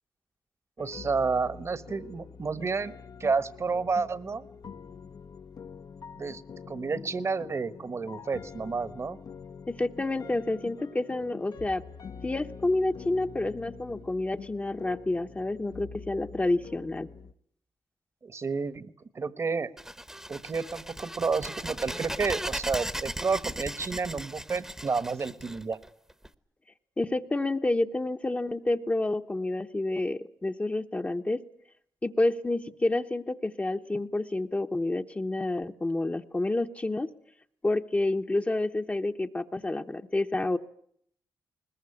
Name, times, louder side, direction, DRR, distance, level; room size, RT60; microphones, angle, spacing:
sound 1, 0.8-17.3, left 6 dB, 60° left, 1.0 m, -46 dB
voice 1, 0.8-2.9 3.2-4.4 6.2-6.4 6.7-9.2 18.2-19.7 20.3-25.8, right 4 dB, 40° right, 16 dB, 1.2 m, -30 dB
voice 2, 9.7-11.8 12.2-17.1 27.0-31.4 32.0-37.1 37.6-40.6, left 2 dB, 20° left, 5 dB, 1.0 m, -29 dB
sound 2, 19.8-26.3, right 1 dB, 5° right, 1.0 m, -37 dB
21.0 x 20.5 x 9.9 m, 0.66 s
cardioid pair, 110°, 7 cm